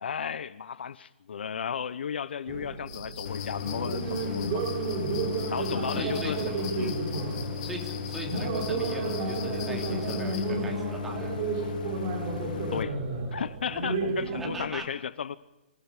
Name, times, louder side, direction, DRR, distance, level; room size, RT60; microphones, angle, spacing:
voice 1, 0.0-4.7 5.5-6.4 6.8-6.9 12.7-13.0 13.3-15.4, left 7 dB, 65° left, 1.0 m, -34 dB
sound 1, 2.5-14.7, right 3 dB, 25° right, 3.5 m, -32 dB
sound 2, 2.9-10.5, left 10 dB, 25° left, 2.8 m, -44 dB
Idling, 3.2-12.8, left 7 dB, 50° left, 2.0 m, -37 dB
voice 2, 5.9-6.7 7.6-11.3 14.3-14.9, right 1 dB, 5° right, 3.2 m, -40 dB
27.0 x 15.5 x 10.0 m
hypercardioid pair, 175°, 6 cm